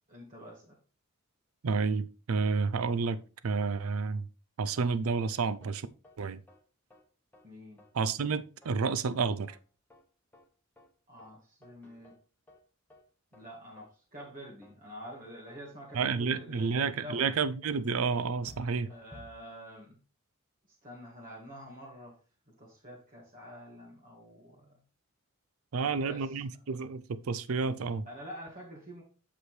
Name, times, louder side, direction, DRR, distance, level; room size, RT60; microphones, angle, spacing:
voice 1, 0.1-0.8 7.4-7.8 11.1-12.2 13.3-17.4 18.9-20.0 20.8-22.1 22.6-24.8 25.7-26.3 28.0-29.0, equal, 40° right, 1.8 m, -47 dB
voice 2, 1.6-3.2 3.4-4.3 4.6-5.9 6.2-6.4 7.9-9.6 15.9-18.9 25.7-28.1, right 5 dB, 85° right, 0.5 m, -30 dB
sound 1, 4.8-4.9 5.2-5.3 5.6-5.7 6.0-6.2 6.5-6.6 6.9-7.0 7.3-7.4 7.8-7.9 8.2-8.3 8.6-8.7 9.0-9.2 9.5-9.6 9.9-10.0 10.3-10.4 10.8-10.9 11.2-11.3 11.6-12.2 12.5-12.6 12.9-13.0 13.3-13.4 13.8-13.9 14.2-14.3 14.6-14.7 15.0-15.2 15.5-15.6 15.9-16.0 16.3-16.4 16.8-16.9 17.2-17.3 17.6-17.7 18.0-18.2 18.5-19.3, equal, 10° left, 1.3 m, -55 dB
8.1 x 6.2 x 3.2 m
head